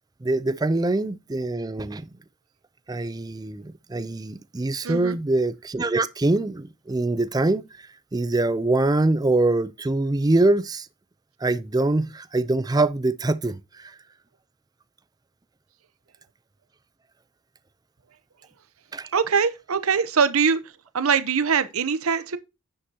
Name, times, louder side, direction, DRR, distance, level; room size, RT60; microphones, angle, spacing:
voice 1, 0.2-2.1 2.9-10.9 11.4-13.9 18.9-19.1, right 2 dB, 20° right, 0.4 m, -24 dB
voice 2, 4.8-5.1 19.1-20.6 20.9-22.4, right 6 dB, 75° right, 0.8 m, -22 dB
9.9 x 7.8 x 2.8 m
head